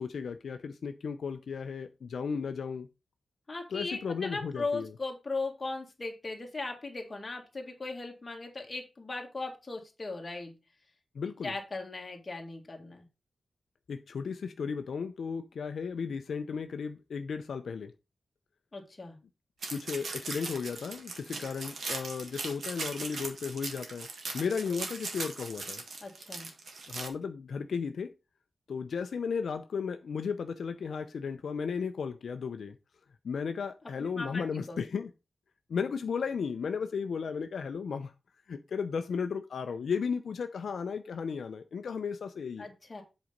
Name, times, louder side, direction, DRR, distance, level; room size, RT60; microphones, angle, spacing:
voice 1, 0.0-2.9 3.7-4.9 11.1-11.5 13.9-17.9 19.7-24.1 24.3-25.8 26.9-28.1 28.7-32.8 33.2-35.1 35.7-38.1 38.5-42.7, left 6 dB, 75° left, 0.6 m, -35 dB
voice 2, 3.5-10.5 11.4-13.0 18.7-19.2 26.0-26.5 34.0-34.8 42.6-43.0, left 3 dB, 25° left, 1.8 m, -38 dB
sound 1, 19.6-27.1, right 3 dB, 65° right, 1.8 m, -39 dB
7.9 x 4.2 x 5.1 m
wide cardioid pair, 180°, 0 cm